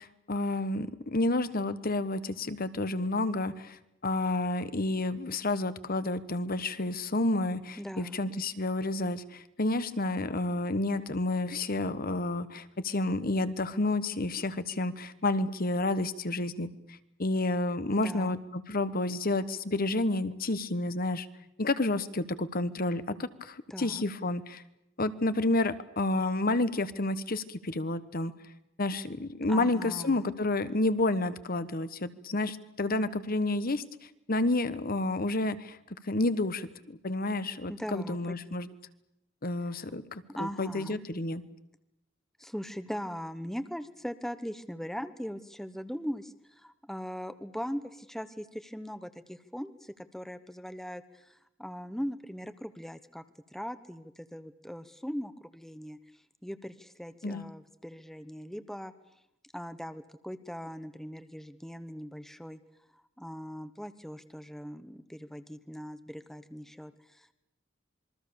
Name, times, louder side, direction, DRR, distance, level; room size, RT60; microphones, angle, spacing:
voice 1, 0.0-21.3 21.6-24.6 25.0-28.3 28.8-35.8 36.0-38.7 39.4-41.4 57.2-57.4, left 2 dB, 50° left, 13 dB, 1.2 m, -30 dB
voice 2, 7.8-8.2 17.9-18.3 23.7-24.0 29.5-30.2 37.7-38.2 40.3-41.0 42.4-53.2 53.5-56.0 56.4-58.9 59.5-62.6 63.2-67.3, equal, ahead, 11 dB, 1.0 m, -40 dB
27.0 x 22.5 x 7.0 m, 0.85 s
head